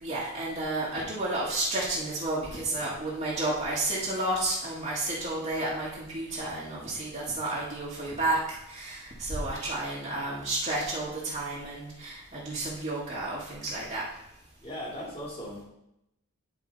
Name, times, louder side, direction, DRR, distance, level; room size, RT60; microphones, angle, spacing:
voice 1, 0.0-14.0, right 2 dB, 35° right, -8 dB, 1.7 m, -31 dB
voice 2, 14.6-15.6, equal, 25° left, -5 dB, 2.5 m, -38 dB
10.5 x 4.8 x 4.0 m, 0.85 s
head